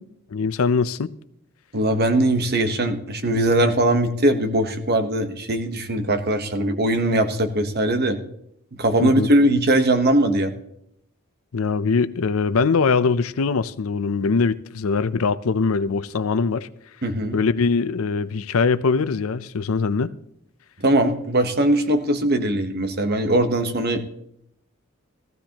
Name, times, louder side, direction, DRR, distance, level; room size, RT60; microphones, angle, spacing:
voice 1, 0.3-1.1 9.0-9.3 11.5-16.7 17.3-20.1, left 4 dB, 80° left, 0.5 m, -22 dB
voice 2, 1.7-8.2 8.8-10.5 17.0-17.4 20.8-24.0, right 1 dB, 50° right, 1.1 m, -20 dB
15.5 x 15.0 x 2.9 m
head